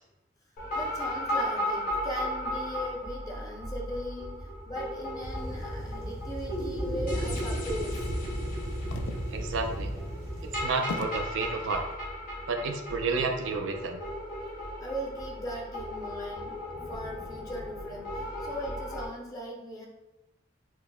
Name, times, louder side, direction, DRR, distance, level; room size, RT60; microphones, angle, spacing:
sound 1, 0.6-19.1, equal, 50° left, 0.8 m, -36 dB
voice 1, 0.7-8.1 14.8-19.9, equal, 20° left, -2 dB, 0.5 m, -39 dB
sound 2, 5.2-10.6, equal, 55° right, 0.8 m, -35 dB
sound 3, 8.9-9.5 10.1-10.2 10.9-11.4 12.2-12.6, left 4 dB, 85° left, 0.3 m, -38 dB
voice 2, 9.3-9.9 10.6-11.9 12.5-14.0, right 4 dB, 85° right, 4 dB, 0.4 m, -31 dB
6.0 x 2.0 x 2.2 m, 1.0 s
head